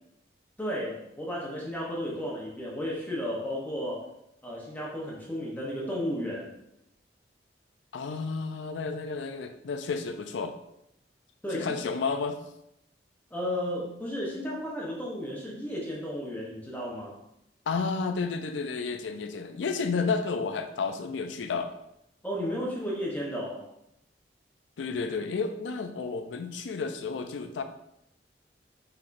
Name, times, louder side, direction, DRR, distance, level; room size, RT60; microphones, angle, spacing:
voice 1, 0.6-4.1 4.4-6.5 11.4-11.7 13.3-17.2 22.2-23.7, equal, 10° left, -4 dB, 0.8 m, -33 dB
voice 2, 7.9-10.6 11.5-12.4 17.7-21.7 24.8-27.6, left 4 dB, 90° left, 8 dB, 0.4 m, -31 dB
5.7 x 3.4 x 2.6 m, 0.82 s
head